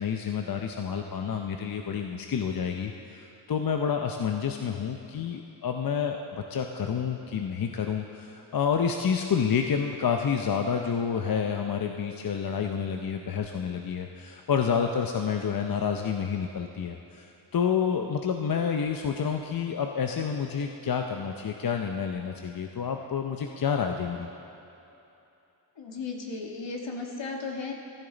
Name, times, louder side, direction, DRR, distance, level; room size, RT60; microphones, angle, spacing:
voice 1, 0.0-3.2 3.5-24.3, left 7 dB, 50° left, 4 dB, 0.7 m, -29 dB
voice 2, 25.7-27.7, left 4 dB, 70° left, 1 dB, 1.6 m, -35 dB
14.0 x 12.5 x 4.0 m, 3.0 s
wide cardioid pair, 85°, 46 cm